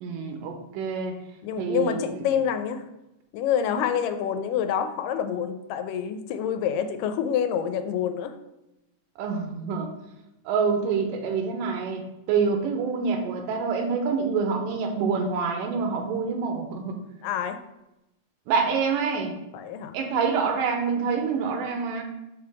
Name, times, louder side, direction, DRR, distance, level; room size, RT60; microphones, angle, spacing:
voice 1, 0.0-1.1 1.6-2.2 9.2-9.9 10.5-12.0 12.3-17.0 18.5-19.3 19.9-22.0, right 5 dB, 80° right, 4 dB, 2.3 m, -26 dB
voice 2, 1.4-2.8 3.3-8.4 17.2-17.6 19.5-20.0, left 8 dB, 90° left, 9 dB, 2.2 m, -27 dB
6.5 x 3.4 x 4.7 m, 0.93 s
omnidirectional pair, 3.8 m